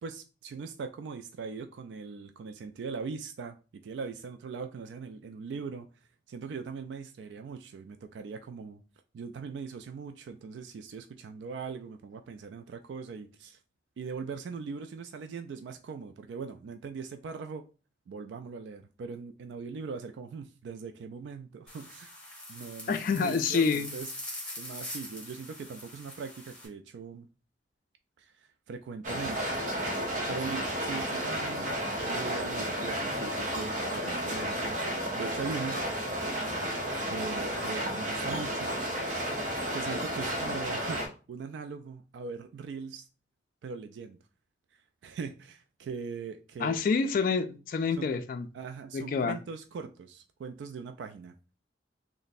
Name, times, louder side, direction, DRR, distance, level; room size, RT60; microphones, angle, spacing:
voice 1, 0.0-3.6 3.8-5.9 6.3-8.8 9.1-13.6 14.0-17.7 18.1-22.1 22.5-24.1 24.6-27.3 28.2-29.4 30.3-34.8 35.2-35.8 37.1-38.7 39.7-43.1 43.6-44.2 44.7-46.8 47.9-48.1 48.5-51.3, right 5 dB, 75° right, 0.3 m, -40 dB
sound 1, 21.7-26.7, left 1 dB, 5° left, 1.1 m, -43 dB
voice 2, 22.9-23.9 46.6-48.5 48.9-49.4, left 5 dB, 50° left, 0.3 m, -27 dB
sound 2, 29.0-41.1, equal, 45° right, 1.0 m, -32 dB
3.2 x 2.1 x 4.0 m
head